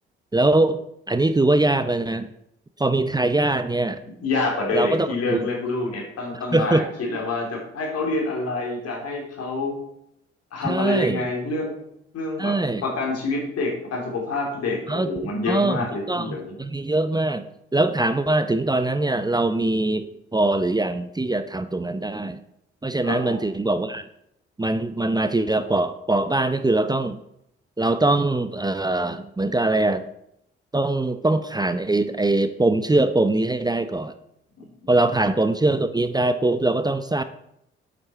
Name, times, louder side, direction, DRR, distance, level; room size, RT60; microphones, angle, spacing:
voice 1, 0.3-0.8 1.1-2.3 2.8-4.0 4.7-5.5 6.5-6.8 10.6-11.2 12.4-12.8 14.9-15.1 15.5-17.4 17.7-20.0 20.3-22.4 22.8-24.1 24.6-27.2 27.8-30.1 30.7-34.1 34.9-37.2, right 2 dB, 15° right, 11 dB, 0.7 m, -22 dB
voice 2, 4.2-9.7 10.5-11.7 12.1-12.5 12.8-16.5 23.0-23.3 34.6-35.0, left 3 dB, 60° left, -1 dB, 3.3 m, -27 dB
8.1 x 7.8 x 4.3 m, 0.78 s
hypercardioid pair, 45°, 29 cm